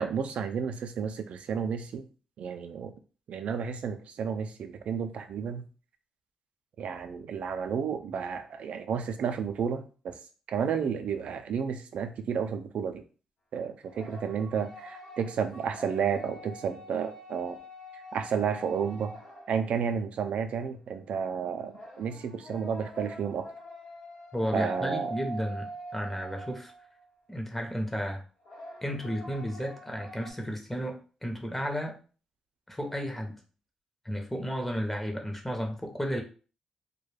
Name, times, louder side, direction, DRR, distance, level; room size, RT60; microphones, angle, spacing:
voice 1, 0.0-2.0 2.4-2.9 3.3-5.6 6.8-10.2 10.5-13.0 13.5-17.6 18.1-19.2 19.5-23.5 24.5-25.1, right 7 dB, 70° right, 7 dB, 0.4 m, -31 dB
sound 1, 13.8-19.9 21.7-27.0 28.4-30.3, equal, 90° left, 1.1 m, -44 dB
voice 2, 24.3-26.7 27.3-28.2 28.8-32.0 32.7-33.4 34.0-36.2, equal, 10° left, 2 dB, 0.8 m, -33 dB
2.2 x 2.2 x 3.2 m, 0.37 s
cardioid pair, 65°, 2 cm